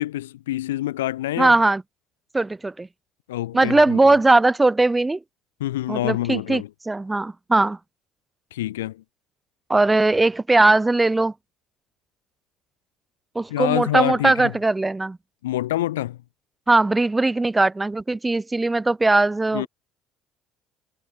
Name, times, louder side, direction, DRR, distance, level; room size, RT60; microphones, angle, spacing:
voice 1, 0.0-1.6 3.3-4.0 5.6-6.7 8.5-9.0 13.5-14.5 15.4-16.2 19.5-19.7, left 14 dB, 80° left, 3.3 m, -26 dB
voice 2, 1.4-1.8 2.3-2.9 3.5-5.2 5.9-7.8 9.7-11.3 13.3-15.2 16.7-19.7, right 2 dB, 15° right, 6.5 m, -19 dB
figure-of-eight pair, 55°, 0 cm